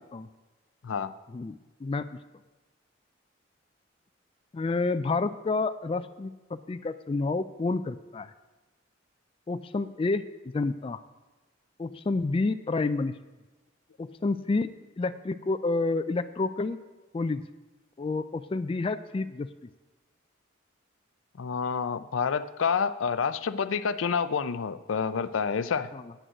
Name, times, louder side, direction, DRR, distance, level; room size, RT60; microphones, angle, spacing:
voice 1, 1.3-2.2 4.5-8.3 9.5-10.3 10.5-11.0 11.8-13.2 14.0-14.7 15.0-16.8 17.1-17.4 18.0-19.5 25.9-26.1, left 3 dB, 30° left, 11 dB, 0.3 m, -29 dB
voice 2, 21.4-25.9, left 6 dB, 90° left, 13 dB, 0.5 m, -28 dB
9.1 x 6.3 x 8.0 m, 1.2 s
head